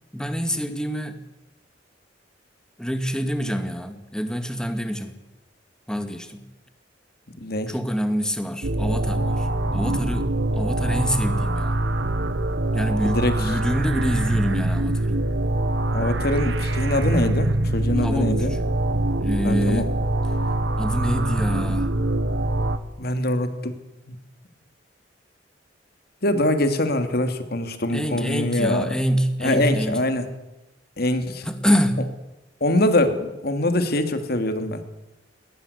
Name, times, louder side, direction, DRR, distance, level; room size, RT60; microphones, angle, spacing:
voice 1, 0.1-1.2 2.8-5.2 5.9-6.5 7.7-11.8 12.7-15.2 18.0-18.7 19.2-20.0 20.8-21.9 27.9-30.0 31.4-32.2, equal, 5° left, 8 dB, 2.2 m, -26 dB
voice 2, 7.4-7.7 13.0-13.5 15.9-18.5 19.4-19.9 23.0-23.8 24.1-24.2 26.2-29.0 29.4-30.3 31.0-31.5 32.6-34.8, left 1 dB, 60° left, 9 dB, 2.7 m, -23 dB
sound 1, 8.6-22.8, right 1 dB, 90° right, 1.5 m, -24 dB
21.0 x 18.5 x 8.2 m, 0.97 s
head